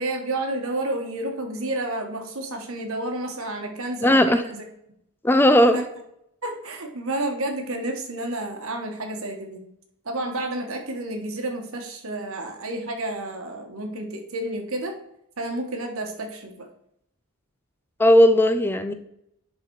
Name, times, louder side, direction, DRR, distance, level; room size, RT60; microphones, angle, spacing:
voice 1, 0.0-4.6 5.7-5.8 6.4-9.6 10.0-14.9 15.4-16.7, right 1 dB, 70° right, 4 dB, 1.5 m, -30 dB
voice 2, 4.0-4.4 5.2-5.8 18.0-18.9, equal, 10° left, 9 dB, 0.4 m, -16 dB
10.5 x 4.2 x 4.7 m, 0.76 s
head